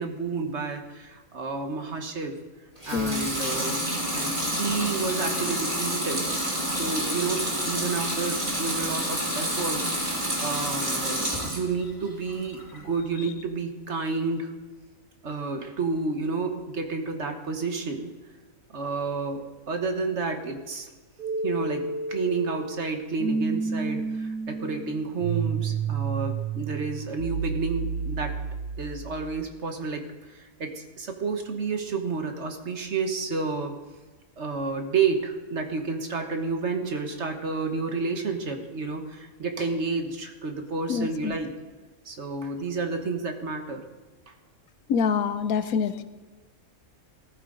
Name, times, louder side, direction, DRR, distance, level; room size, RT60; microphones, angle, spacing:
voice 1, 0.0-2.3 2.8-6.2 6.7-14.5 15.2-18.1 18.7-20.9 21.4-28.4 28.8-33.8 34.4-41.5 42.0-43.8 44.3-44.4, right 4 dB, 55° right, 5 dB, 1.5 m, -30 dB
Water tap faucet / Sink (filling or washing) / Liquid, 2.8-11.7 12.1-12.8, right 1 dB, 20° right, 3.2 m, -28 dB
voice 2, 2.9-3.3 40.9-41.4 44.9-45.9, left 6 dB, 80° left, 12 dB, 1.2 m, -25 dB
sound 1, 21.2-29.1, right 5 dB, 80° right, 2.7 m, -30 dB
18.0 x 13.5 x 3.9 m, 1.2 s
omnidirectional pair, 1.5 m